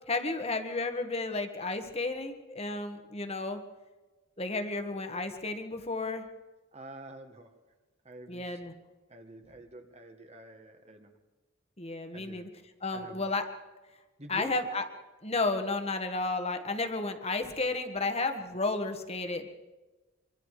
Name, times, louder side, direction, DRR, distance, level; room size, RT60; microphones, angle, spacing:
voice 1, 0.1-3.6 4.4-6.2 8.3-8.7 11.8-12.5 12.8-13.4 14.3-14.8 15.2-19.5, left 3 dB, 30° left, 7 dB, 1.8 m, -32 dB
voice 2, 6.7-7.6 8.0-8.6 9.1-11.2 12.1-12.5 12.9-13.3 14.2-14.5, right 1 dB, 35° right, 6 dB, 1.8 m, -47 dB
25.0 x 24.0 x 5.0 m, 1.2 s
head